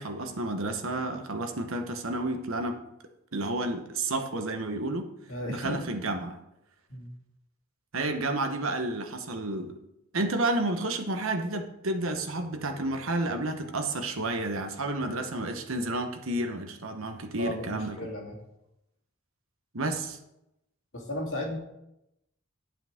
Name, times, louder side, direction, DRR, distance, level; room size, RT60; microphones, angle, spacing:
voice 1, 0.0-2.8 3.3-5.1 5.5-6.4 7.9-9.8 10.1-18.0 19.7-20.2, right 2 dB, 75° right, 6 dB, 1.2 m, -31 dB
voice 2, 5.3-5.9 6.9-7.1 17.4-18.4 20.9-21.6, left 1 dB, 70° left, -1 dB, 2.5 m, -34 dB
10.5 x 8.9 x 3.7 m, 0.86 s
head